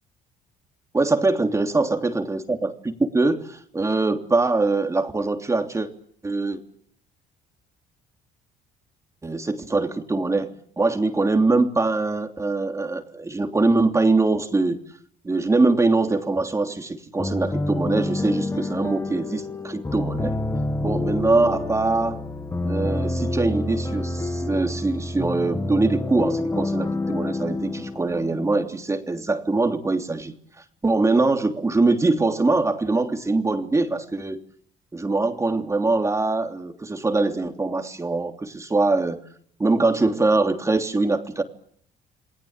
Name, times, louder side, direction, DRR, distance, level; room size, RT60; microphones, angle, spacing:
voice 1, 0.9-5.9 6.2-6.6 9.2-14.8 15.2-20.4 20.8-22.2 22.6-34.4 34.9-39.2 39.6-41.4, right 3 dB, 15° right, 5 dB, 3.1 m, -23 dB
sound 1, 17.2-28.9, left 2 dB, 15° left, 2.2 m, -28 dB
28.5 x 20.0 x 9.0 m, 0.64 s
cardioid pair, 110°, 17 cm